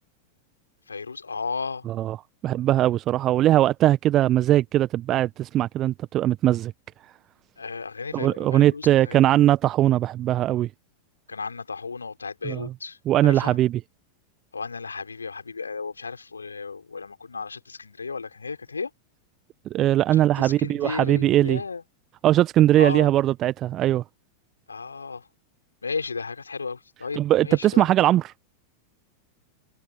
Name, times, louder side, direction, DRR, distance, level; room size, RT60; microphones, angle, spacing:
voice 1, 0.9-1.9 7.6-9.2 11.3-13.6 14.5-18.9 20.1-21.8 22.8-23.1 24.7-25.3 25.8-28.1, left 4 dB, 75° left, 5.5 m, -34 dB
voice 2, 1.9-2.2 2.4-6.7 8.1-10.7 12.4-12.7 13.1-13.8 19.7-21.6 22.2-24.0 27.1-28.3, right 13 dB, 30° right, 1.2 m, -20 dB
figure-of-eight pair, 90°, 0 cm